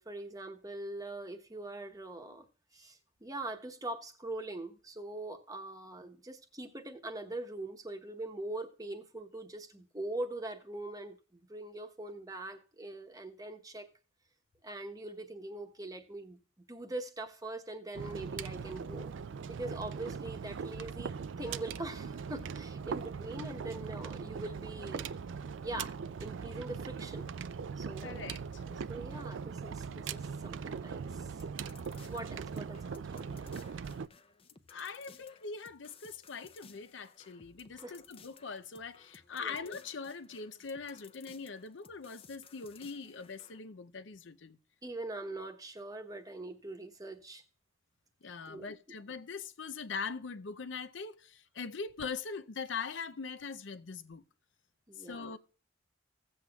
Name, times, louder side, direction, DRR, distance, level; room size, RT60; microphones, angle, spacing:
voice 1, 0.0-2.5 2.7-11.2 11.5-13.9 14.6-16.4 16.7-19.1 19.5-25.1 25.6-27.3 27.8-28.3 28.7-31.3 32.1-33.6 37.7-37.9 39.4-39.6 44.8-47.4 48.5-48.7 54.9-55.3, right 2 dB, 20° right, 1.0 m, -42 dB
sound 1, 17.9-34.1, right 6 dB, 75° right, 0.4 m, -40 dB
voice 2, 28.0-28.4 34.7-44.6 48.2-54.2 55.0-55.4, left 5 dB, 70° left, 0.6 m, -42 dB
sound 2, 31.2-43.6, left 5 dB, 30° left, 0.6 m, -59 dB
16.5 x 7.8 x 2.3 m
head